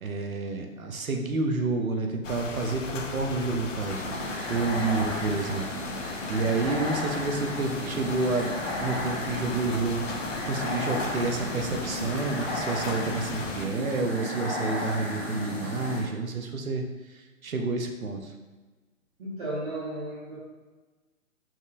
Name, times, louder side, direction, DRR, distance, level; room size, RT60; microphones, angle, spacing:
voice 1, 0.0-5.7 6.3-16.9 17.4-18.3, right 3 dB, 75° right, 3 dB, 0.9 m, -29 dB
sound 1, 2.2-13.7, left 4 dB, 60° left, 0.6 m, -36 dB
sound 2, 3.8-16.0, left 1 dB, 25° left, 1.2 m, -34 dB
voice 2, 19.2-20.4, right 1 dB, 40° right, -10 dB, 1.3 m, -34 dB
5.9 x 2.8 x 2.5 m, 1.3 s
figure-of-eight pair, 145°, 42 cm